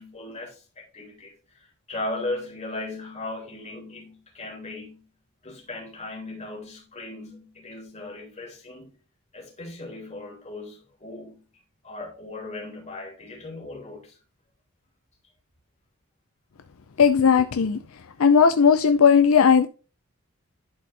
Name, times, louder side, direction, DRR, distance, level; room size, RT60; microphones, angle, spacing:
voice 1, 0.0-1.6 1.9-5.0 5.4-9.0 9.3-11.4 11.8-14.2, left 2 dB, 30° left, 3.0 m, -37 dB
voice 2, 17.0-17.8 18.2-19.7, left 6 dB, 65° left, 0.5 m, -17 dB
11.0 x 4.2 x 3.4 m
head